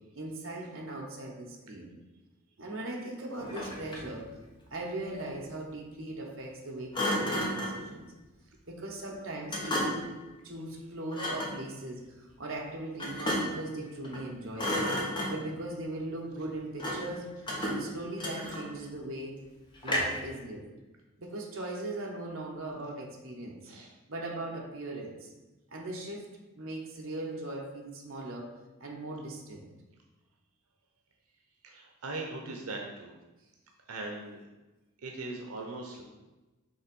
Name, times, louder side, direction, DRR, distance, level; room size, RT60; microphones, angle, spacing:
voice 1, 0.1-1.9 2.6-4.4 4.7-8.0 8.7-10.1 10.4-14.9 15.3-19.4 19.8-20.7 21.2-23.7 24.1-25.3 25.7-26.3 26.5-28.5 28.8-29.7, right 2 dB, 65° right, 0 dB, 1.0 m, -39 dB
Thump thud, 3.4-4.2 6.9-7.8 9.5-10.2 11.1-11.6 13.0-13.7 14.0-14.3 14.6-15.6 16.8-17.2 17.5-18.8 19.8-20.3, left 1 dB, 20° left, 1.1 m, -32 dB
voice 2, 31.6-33.1 33.9-34.4 35.0-36.0, right 2 dB, 90° right, 1 dB, 0.8 m, -39 dB
5.4 x 3.5 x 5.3 m, 1.1 s
head